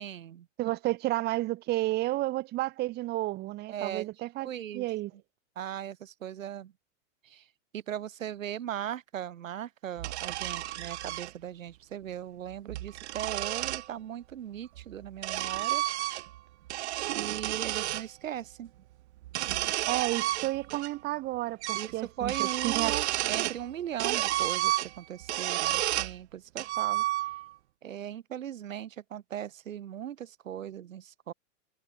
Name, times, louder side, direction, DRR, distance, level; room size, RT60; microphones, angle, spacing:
voice 1, 0.0-0.5 3.7-4.1 4.4-4.9 5.6-6.7 7.2-7.5 7.7-15.8 17.2-18.7 21.7-27.1 27.8-31.3, right 10 dB, 85° right, 7.3 m, -38 dB
voice 2, 0.6-4.5 4.7-5.1 19.9-22.9, right 18 dB, 25° right, 1.5 m, -31 dB
sound 1, 10.0-11.3 12.5-13.9 14.8-16.4 16.7-18.1 19.2-20.9 21.2-21.3 21.6-21.9 22.2-23.6 24.0-26.2 26.6-27.5, right 15 dB, 60° right, 6.6 m, -31 dB
supercardioid pair, 155°, 38 cm